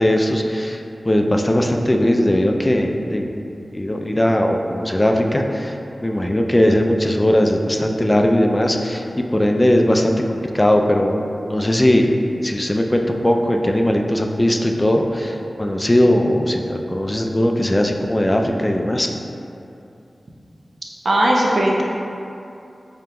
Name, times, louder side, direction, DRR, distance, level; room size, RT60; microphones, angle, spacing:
voice 1, 0.0-3.3 3.7-12.2 12.4-19.1, left 1 dB, 20° left, 3 dB, 0.3 m, -19 dB
voice 2, 21.0-21.8, right 1 dB, 70° right, -3 dB, 0.5 m, -17 dB
5.0 x 2.9 x 2.2 m, 2.7 s
wide cardioid pair, 60°, 0 cm